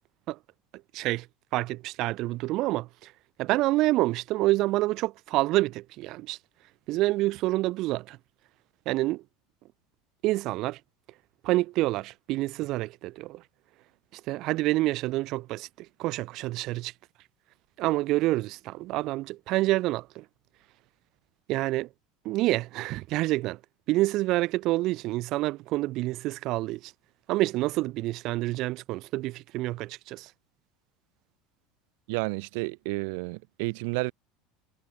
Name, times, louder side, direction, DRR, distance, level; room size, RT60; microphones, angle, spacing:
voice 1, 0.9-1.3 1.5-3.1 3.4-6.4 6.9-8.2 8.9-9.2 10.2-10.8 11.4-13.4 14.1-16.9 17.8-20.2 21.5-21.9 22.2-23.6 23.9-26.9 27.3-30.3, right 18 dB, 50° right, 4.1 m, -27 dB
voice 2, 32.1-34.1, right 31 dB, 70° right, 6.2 m, -31 dB
supercardioid pair, 150°, 0 cm